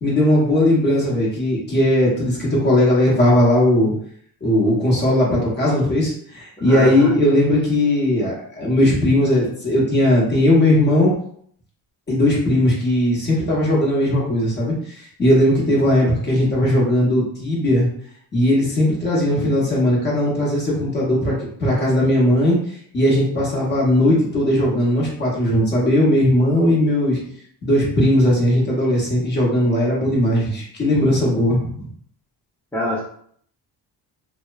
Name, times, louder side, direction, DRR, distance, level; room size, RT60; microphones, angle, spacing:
voice 1, 0.0-3.9 4.4-11.1 12.1-17.9 18.3-22.6 22.9-27.2 27.6-31.9, left 1 dB, 25° left, -4 dB, 0.9 m, -18 dB
voice 2, 6.7-7.1 32.7-33.0, left 1 dB, 5° left, -8 dB, 0.4 m, -24 dB
2.9 x 2.1 x 2.3 m, 0.62 s
cardioid pair, 145°, 43 cm